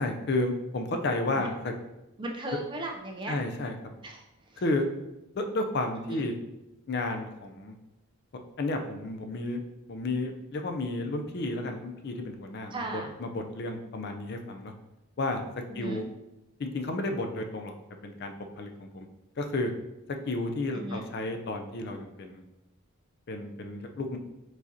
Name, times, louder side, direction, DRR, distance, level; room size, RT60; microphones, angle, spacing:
voice 1, 0.0-1.7 3.3-3.9 4.6-4.9 5.3-6.3 6.9-7.7 8.6-9.6 9.9-14.7 15.2-16.0 16.6-17.7 18.0-19.1 19.4-19.7 20.1-22.4 23.3-24.2, left 2 dB, 50° left, 4 dB, 0.4 m, -32 dB
voice 2, 2.2-3.3 4.0-4.6 6.0-6.2 12.7-13.1 15.7-16.0 20.7-21.1, right 1 dB, 20° right, 2 dB, 0.4 m, -37 dB
4.9 x 4.0 x 2.7 m, 0.94 s
head